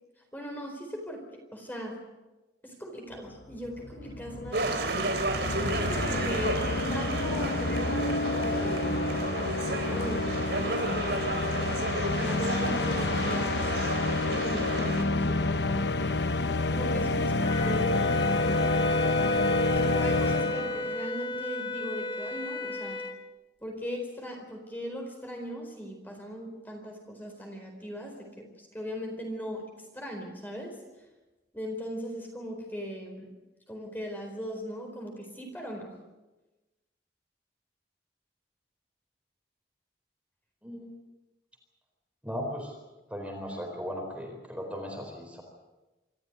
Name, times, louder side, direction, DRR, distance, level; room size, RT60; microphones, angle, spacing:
voice 1, 0.3-1.2 1.5-2.0 2.6-5.1 5.3-9.0 9.7-11.4 12.2-13.7 14.2-16.3 16.7-18.7 19.7-23.0 23.6-30.8 31.5-33.3 33.7-35.9, equal, 10° left, 1 dB, 4.4 m, -39 dB
sound 1, 3.3-3.4 3.5-21.0, left 2 dB, 80° left, 1.0 m, -29 dB
sound 2, 4.5-15.0, right 2 dB, 75° right, 3.6 m, -32 dB
Wind instrument woodwind instrument, 17.4-23.2, left 1 dB, 30° left, 1.4 m, -33 dB
voice 2, 42.2-42.7 43.1-45.4, equal, 5° right, 1 dB, 4.2 m, -37 dB
27.0 x 13.5 x 9.4 m, 1.1 s
head